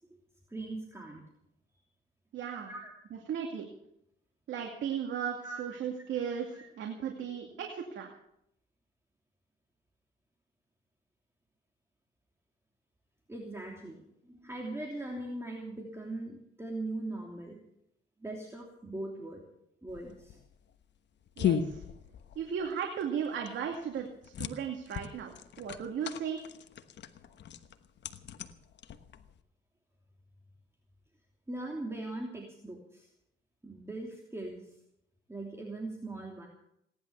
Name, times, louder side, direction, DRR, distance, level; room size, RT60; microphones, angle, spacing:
voice 1, 0.5-1.2 2.7-2.9 5.4-5.6 6.5-6.7 13.3-17.6 18.2-19.4 19.8-20.4 31.5-33.1 33.6-34.7 35.3-36.5, right 2 dB, 15° right, 0 dB, 3.0 m, -40 dB
voice 2, 2.3-2.7 3.1-3.7 4.5-8.1 21.4-21.8 22.4-25.3 25.6-26.5, right 7 dB, 75° right, 2 dB, 2.4 m, -36 dB
sound 1, 19.9-29.4, left 8 dB, 60° left, 1.2 m, -37 dB
18.0 x 11.0 x 7.0 m, 0.76 s
cardioid pair, 90°, 20 cm